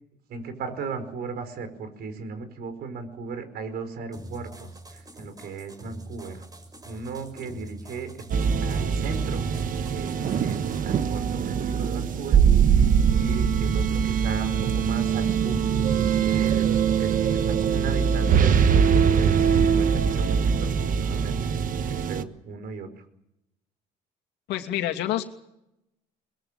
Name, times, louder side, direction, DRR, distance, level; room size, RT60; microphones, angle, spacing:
voice 1, 0.3-6.5 6.8-8.2 8.6-9.4 9.9-12.4 13.1-15.7 16.2-16.7 16.9-17.1 17.5-20.7 20.9-21.4 21.9-22.9, right 4 dB, 70° right, 9 dB, 5.0 m, -36 dB
sound 1, 4.1-10.8, equal, 20° right, 5.9 m, -44 dB
sound 2, 8.3-22.2, right 7 dB, 55° right, 1.4 m, -22 dB
voice 2, 24.5-25.2, left 13 dB, 90° left, 4 dB, 2.7 m, -27 dB
22.5 x 21.0 x 7.6 m, 0.84 s
cardioid pair, 110°, 17 cm